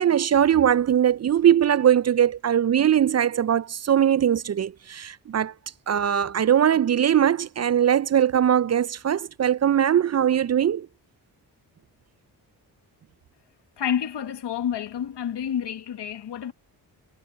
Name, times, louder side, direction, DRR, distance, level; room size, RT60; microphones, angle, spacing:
voice 1, 0.0-5.5 5.9-10.9, right 9 dB, 40° right, 0.4 m, -21 dB
voice 2, 13.8-16.5, left 9 dB, 75° left, 1.5 m, -29 dB
cardioid pair, 50°, 42 cm